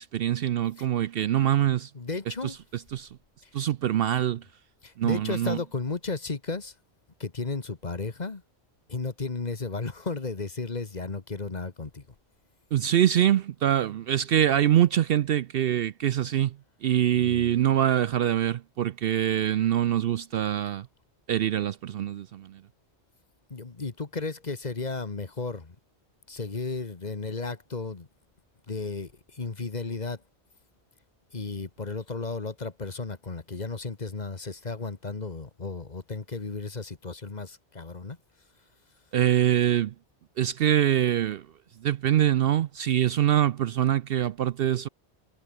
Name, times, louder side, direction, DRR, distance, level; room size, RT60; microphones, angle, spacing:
voice 1, 0.0-1.9 2.4-3.1 3.5-4.4 5.0-5.6 12.7-16.6 16.8-20.9 21.3-22.6 39.1-39.9 40.4-41.5 41.8-44.9, right 11 dB, 65° right, 0.7 m, -24 dB
voice 2, 1.9-2.6 3.4-3.5 4.8-6.7 7.2-8.4 8.9-12.0 17.2-17.5 23.5-25.7 26.3-28.1 28.7-30.2 31.3-38.2, left 3 dB, 40° left, 1.6 m, -34 dB
omnidirectional pair, 1.2 m